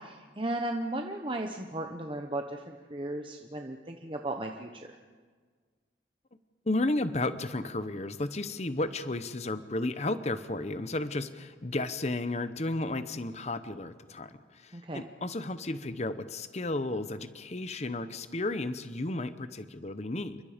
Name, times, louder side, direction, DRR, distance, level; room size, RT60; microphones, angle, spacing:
voice 1, 0.0-4.9 14.7-15.0, right 1 dB, 30° right, 3 dB, 1.1 m, -35 dB
voice 2, 6.7-20.4, left 2 dB, 35° left, 12 dB, 0.9 m, -33 dB
29.0 x 24.0 x 5.1 m, 1.5 s
head